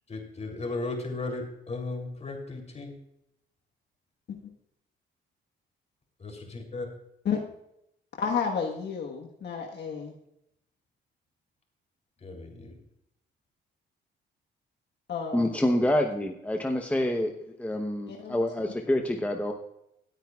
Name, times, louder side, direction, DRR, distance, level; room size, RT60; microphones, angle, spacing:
voice 1, 0.1-2.9 6.2-6.9 12.2-12.8, left 3 dB, 35° left, 3 dB, 3.3 m, -36 dB
voice 2, 8.2-10.2 15.1-15.5 18.1-18.4, left 6 dB, 60° left, 0 dB, 1.4 m, -31 dB
voice 3, 15.3-17.3 17.6-19.5, left 1 dB, 5° left, 3 dB, 0.9 m, -27 dB
18.5 x 9.1 x 2.4 m, 0.80 s
cardioid pair, 90°, 20 cm